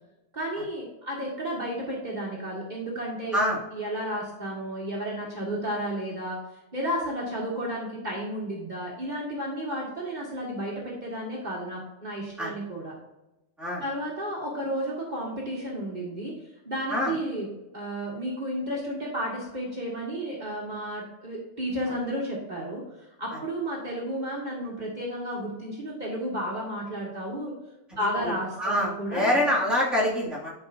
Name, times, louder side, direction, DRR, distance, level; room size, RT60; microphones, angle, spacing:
voice 1, 0.3-3.5 3.7-6.4 6.7-12.9 13.8-16.3 16.7-22.8 23.2-27.5 28.0-29.4, equal, 40° right, -4 dB, 1.8 m, -32 dB
voice 2, 27.9-28.3 28.6-30.5, left 1 dB, ahead, -6 dB, 2.2 m, -26 dB
11.5 x 4.9 x 2.6 m, 0.94 s
omnidirectional pair, 1.2 m